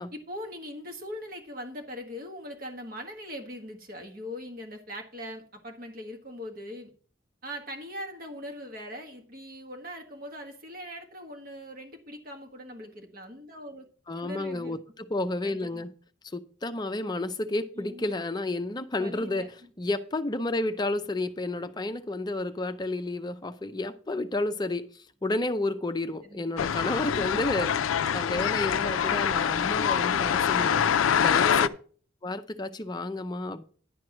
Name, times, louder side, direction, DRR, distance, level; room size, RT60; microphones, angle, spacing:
voice 1, 0.1-6.9 7.4-13.9 14.2-14.8 15.4-15.9 17.7-18.2 19.0-19.7 26.2-26.5 27.1-27.4, equal, 45° right, 1.5 m, -41 dB
voice 2, 14.1-15.9 16.3-19.5 19.8-27.7 28.1-30.9 31.2-31.7 32.2-33.6, left 2 dB, 20° left, 0.5 m, -31 dB
sound 1, 26.6-31.7, left 8 dB, 85° left, 0.4 m, -25 dB
10.5 x 4.7 x 5.9 m
head